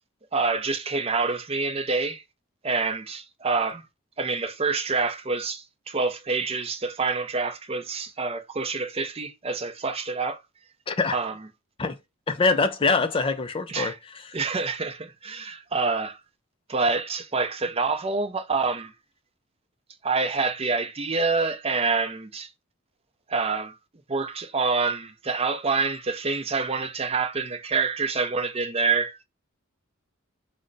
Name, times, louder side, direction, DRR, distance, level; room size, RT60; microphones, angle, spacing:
voice 1, 0.3-2.2 2.6-3.8 4.2-10.4 11.1-11.4 13.7-14.0 14.3-16.2 16.7-18.9 20.0-22.5 23.3-23.8 24.1-29.2, right 4 dB, 30° right, 0.5 m, -27 dB
voice 2, 10.9-11.2 11.8-12.0 12.3-13.9, left 4 dB, 25° left, 0.4 m, -23 dB
5.0 x 2.1 x 3.8 m
head